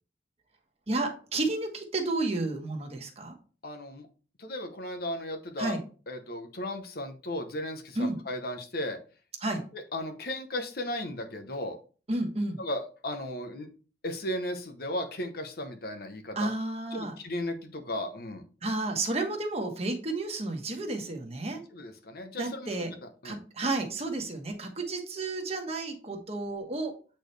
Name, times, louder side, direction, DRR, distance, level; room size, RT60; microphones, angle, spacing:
voice 1, 0.9-3.3 5.6-5.8 7.9-8.2 9.4-9.6 12.1-12.6 16.3-17.2 18.6-21.6 22.4-22.9 23.2-26.9, right 2 dB, 35° right, 3 dB, 1.3 m, -31 dB
voice 2, 3.6-4.1 4.4-5.8 6.1-9.0 9.9-11.8 12.6-13.7 14.0-16.5 16.9-18.4 21.7-23.0 23.2-23.4, left 1 dB, 55° left, 6 dB, 0.9 m, -35 dB
8.2 x 4.4 x 3.3 m, 0.37 s
head